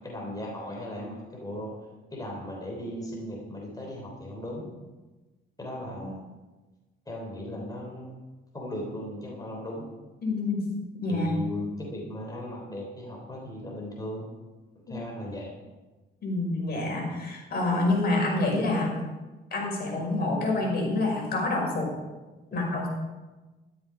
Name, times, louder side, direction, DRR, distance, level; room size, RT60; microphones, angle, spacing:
voice 1, 0.0-4.7 5.6-6.2 7.1-9.9 11.1-14.3 14.9-15.6, left 1 dB, 20° left, -1 dB, 3.6 m, -37 dB
voice 2, 10.2-10.6 11.0-11.3 14.9-15.0 16.2-19.0 19.5-21.9 22.5-22.9, left 2 dB, 55° left, -1 dB, 5.7 m, -27 dB
13.0 x 12.5 x 4.9 m, 1.2 s
cardioid pair, 90°, 20 cm